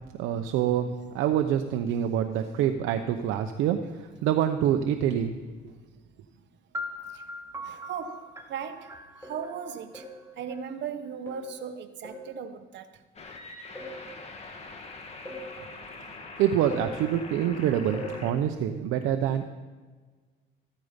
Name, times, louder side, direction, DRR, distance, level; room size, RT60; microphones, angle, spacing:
voice 1, 0.2-5.3 16.0-19.4, right 10 dB, 85° right, 0.9 m, -26 dB
sound 1, 6.7-10.6, left 1 dB, 15° right, 1.3 m, -41 dB
voice 2, 7.6-8.9 9.2-10.0 10.4-12.9, right 7 dB, 65° right, 1.2 m, -37 dB
sound 2, 8.2-8.3 9.2-9.5 9.9-10.2 11.3-11.6 12.0-12.4 13.8-14.1 15.3-15.6 16.7-17.0 17.9-18.3, left 1 dB, 10° left, 5.7 m, -39 dB
sound 3, 13.2-18.3, left 3 dB, 30° left, 2.2 m, -43 dB
14.5 x 13.5 x 5.3 m
cardioid pair, 120°, 20 cm